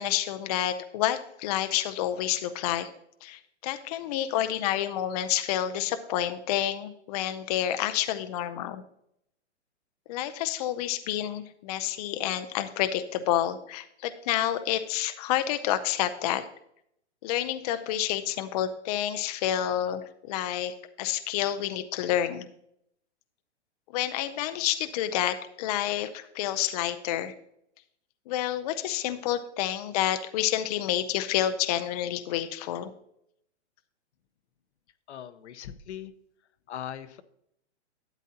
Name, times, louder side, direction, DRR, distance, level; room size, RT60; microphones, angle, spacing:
voice 1, 0.0-2.9 3.2-8.8 10.1-16.4 17.2-22.5 23.9-27.3 28.3-32.9, left 12 dB, 35° left, 10 dB, 0.5 m, -29 dB
voice 2, 35.1-36.1 36.7-37.2, left 10 dB, 70° left, 11 dB, 0.9 m, -40 dB
12.0 x 9.1 x 2.8 m, 0.75 s
hypercardioid pair, 140°, 35 cm